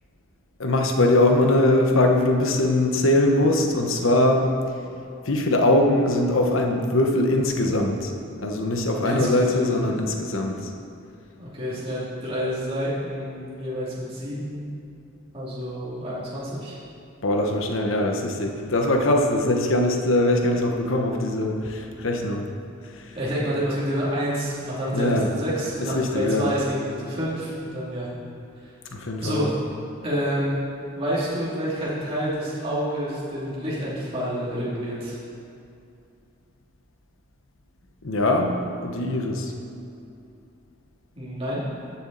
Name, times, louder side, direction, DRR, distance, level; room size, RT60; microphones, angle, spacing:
voice 1, 0.6-4.5 5.2-10.7 17.2-22.5 22.9-23.2 24.9-25.3 25.8-26.5 28.9-29.5 38.0-39.5, left 1 dB, 75° left, 2 dB, 1.0 m, -22 dB
voice 2, 9.0-9.6 11.4-14.7 15.3-16.8 23.1-28.1 29.2-29.5 30.0-30.6 30.9-35.2 41.2-41.6, equal, 25° right, -8 dB, 2.6 m, -28 dB
14.5 x 7.1 x 4.0 m, 2.6 s
head